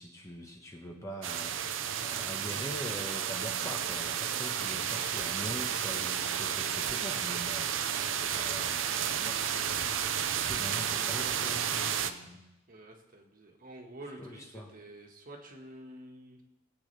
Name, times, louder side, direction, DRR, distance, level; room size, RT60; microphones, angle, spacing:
voice 1, 0.0-12.4 14.2-14.7, equal, 15° left, 1 dB, 1.3 m, -43 dB
sound 1, 1.2-12.1, right 8 dB, 70° right, 0.7 m, -32 dB
voice 2, 12.7-16.4, right 1 dB, 45° right, 1 dB, 1.7 m, -49 dB
20.0 x 8.6 x 3.4 m, 0.96 s
head